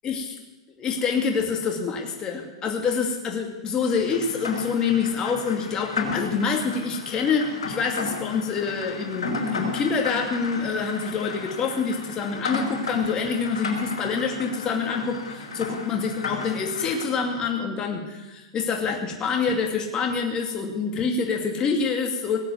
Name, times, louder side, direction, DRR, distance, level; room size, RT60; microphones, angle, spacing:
voice 1, 0.0-0.3 0.8-22.4, left 5 dB, 25° left, 2 dB, 2.4 m, -26 dB
Rain, 3.8-17.1, left 3 dB, 85° left, 5.1 m, -33 dB
19.0 x 7.8 x 9.6 m, 1.1 s
hypercardioid pair, 130°, 3 cm